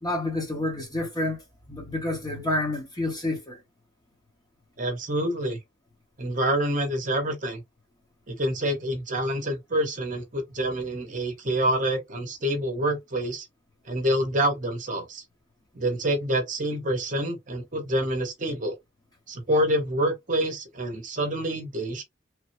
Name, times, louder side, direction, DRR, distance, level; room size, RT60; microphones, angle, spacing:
voice 1, 0.0-1.4 1.7-3.6, left 2 dB, 20° left, 1.0 m, -29 dB
voice 2, 4.8-5.6 6.2-7.6 8.3-13.5 13.9-15.2 15.7-18.7 19.3-22.0, right 1 dB, 40° right, 0.9 m, -27 dB
3.2 x 2.1 x 3.0 m
head